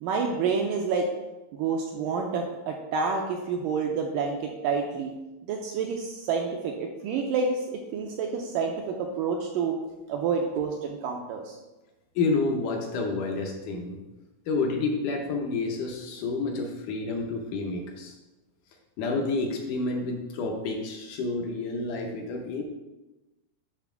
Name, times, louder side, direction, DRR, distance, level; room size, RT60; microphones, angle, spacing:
voice 1, 0.0-1.1 1.5-5.1 5.5-9.8 10.1-11.6, right 5 dB, 80° right, 1 dB, 2.0 m, -28 dB
voice 2, 12.2-14.0 14.5-18.1 19.0-22.6, left 3 dB, 75° left, 2 dB, 1.9 m, -29 dB
8.3 x 3.4 x 5.7 m, 1.1 s
omnidirectional pair, 4.4 m